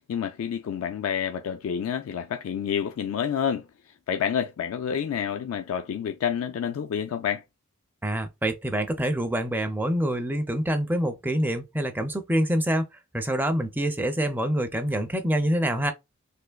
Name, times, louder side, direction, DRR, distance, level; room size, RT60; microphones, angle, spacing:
voice 1, 0.1-3.7 4.1-7.4, left 8 dB, 70° left, 0.3 m, -28 dB
voice 2, 8.0-12.9 13.1-15.9, right 1 dB, 10° right, 0.4 m, -26 dB
3.4 x 2.9 x 2.2 m
head